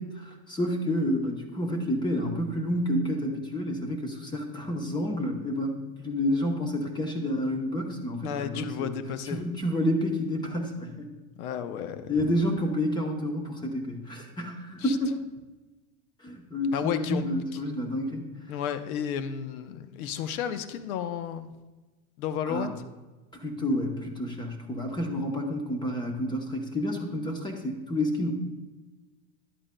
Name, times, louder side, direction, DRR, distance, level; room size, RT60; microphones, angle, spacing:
voice 1, 0.0-9.0 9.3-11.1 12.1-15.2 16.2-18.3 22.5-22.8 23.3-28.3, left 1 dB, 10° left, 3 dB, 0.8 m, -29 dB
voice 2, 8.2-9.4 11.4-12.3 14.8-15.0 16.7-17.2 18.5-21.5 22.2-22.7, left 8 dB, 75° left, 11 dB, 0.8 m, -32 dB
11.0 x 8.7 x 2.2 m, 1.2 s
supercardioid pair, 145°, 43 cm